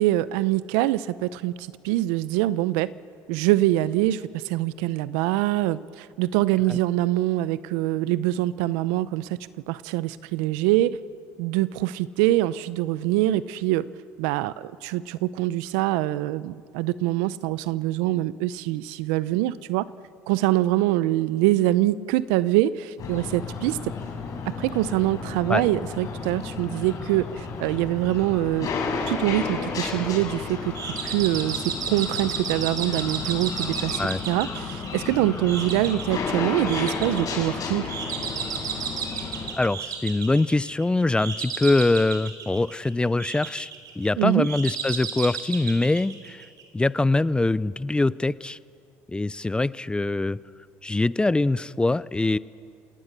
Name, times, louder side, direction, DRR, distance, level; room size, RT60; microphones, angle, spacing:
voice 1, 0.0-2.9 3.3-9.4 9.7-11.0 11.4-13.8 14.2-19.9 20.3-23.8 24.5-28.7 29.1-30.7 31.0-34.0 34.3-37.9 44.2-44.5, right 15 dB, 85° right, 17 dB, 0.7 m, -24 dB
sound 1, 23.0-39.5, left 4 dB, 55° left, 5.2 m, -32 dB
sound 2, 30.7-46.8, right 6 dB, 55° right, 3.7 m, -34 dB
voice 2, 39.6-43.7 44.0-46.4 46.7-48.6 49.1-50.4 50.8-52.4, left 2 dB, 15° left, 19 dB, 0.5 m, -23 dB
27.5 x 18.5 x 6.8 m, 2.3 s
supercardioid pair, 80°, 7 cm